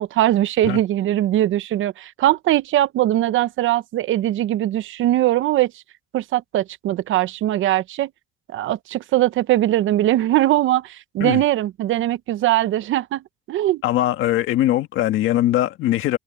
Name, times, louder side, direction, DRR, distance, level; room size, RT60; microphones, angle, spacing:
voice 1, 0.0-5.7 6.1-8.1 8.5-13.2 13.5-13.8, right 14 dB, 80° right, 0.8 m, -20 dB
voice 2, 13.8-16.2, left 14 dB, 90° left, 1.9 m, -21 dB
cardioid pair, 90°, 20 cm